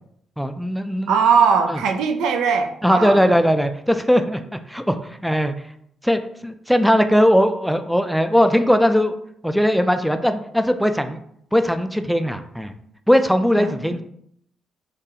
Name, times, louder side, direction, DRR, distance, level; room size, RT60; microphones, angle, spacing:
voice 1, 0.4-1.2 1.7-1.8 2.8-4.4 4.7-5.5 6.0-9.1 9.4-11.2 11.5-12.7 13.1-14.0, equal, ahead, 8 dB, 0.3 m, -19 dB
voice 2, 1.1-3.2 13.6-13.7, right 6 dB, 80° right, 6 dB, 0.4 m, -19 dB
3.7 x 3.1 x 2.8 m, 0.70 s
cardioid pair, 90°, 0 cm